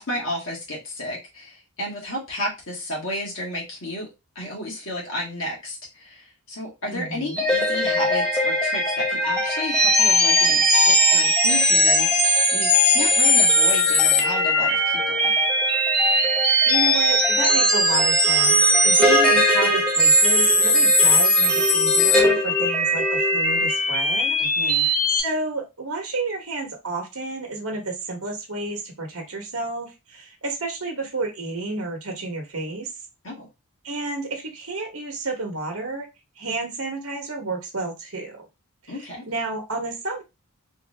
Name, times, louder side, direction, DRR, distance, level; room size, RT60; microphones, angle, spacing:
voice 1, 0.0-4.1 4.4-15.3 24.4-24.9 33.2-33.5 38.9-39.2, left 1 dB, 60° left, -3 dB, 1.7 m, -32 dB
voice 2, 6.9-7.4 16.6-24.4 24.7-32.9 33.8-36.1 36.4-38.5 38.9-40.2, right 3 dB, 65° right, 2 dB, 1.0 m, -31 dB
sound 1, 7.3-25.2, equal, 5° left, 0.8 m, -19 dB
3.6 x 2.6 x 3.2 m, 0.24 s
head